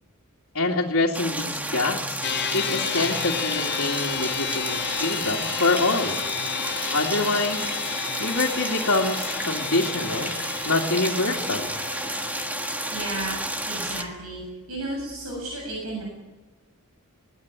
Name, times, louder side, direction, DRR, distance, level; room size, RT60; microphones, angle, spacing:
voice 1, 0.5-2.2 2.5-6.2 6.9-7.6 8.2-10.3 10.6-11.7, left 2 dB, 70° left, -5 dB, 2.8 m, -25 dB
sound 1, 1.1-14.0, right 1 dB, 5° right, 1.6 m, -31 dB
sound 2, 2.2-13.0, left 9 dB, 50° left, 0.8 m, -32 dB
voice 2, 12.9-13.4 13.7-16.0, right 2 dB, 80° right, -1 dB, 7.4 m, -33 dB
21.5 x 17.5 x 9.3 m, 1.2 s
head